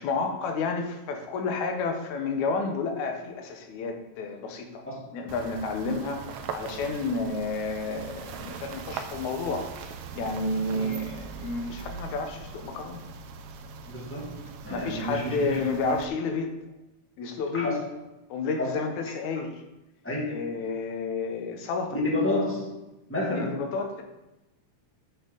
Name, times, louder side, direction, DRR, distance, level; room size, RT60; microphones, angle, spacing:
voice 1, 0.0-4.9 5.1-13.0 14.7-16.5 17.2-17.7 18.3-19.6 20.3-22.0 23.3-24.0, left 3 dB, 80° left, 4 dB, 2.4 m, -31 dB
sound 1, 5.3-16.1, right 6 dB, 85° right, 1.3 m, -41 dB
voice 2, 13.9-15.6 17.5-17.9 18.6-18.8 20.0-20.4 21.9-22.7 23.1-23.6, left 1 dB, 5° left, -5 dB, 1.8 m, -30 dB
9.2 x 6.6 x 4.0 m, 0.97 s
omnidirectional pair, 3.3 m